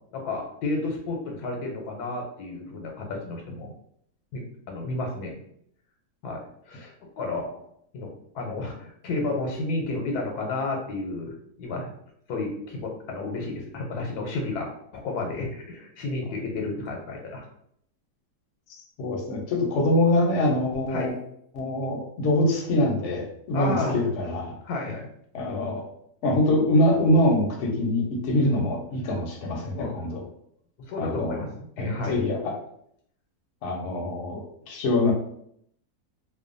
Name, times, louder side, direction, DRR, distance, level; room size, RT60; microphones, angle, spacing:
voice 1, 0.1-3.7 4.3-5.4 6.2-7.5 7.9-11.3 11.6-11.9 12.3-14.7 14.9-17.5 20.9-21.1 23.5-23.9 24.6-25.0 28.4-28.5 29.7-29.9 30.8-32.2, left 2 dB, 80° left, 1 dB, 1.1 m, -31 dB
voice 2, 19.0-21.1 21.5-24.5 25.3-25.9 26.2-30.2 31.0-31.4 31.8-32.5 33.6-35.1, left 1 dB, 60° left, 0 dB, 0.8 m, -24 dB
2.6 x 2.2 x 2.4 m, 0.69 s
omnidirectional pair, 1.6 m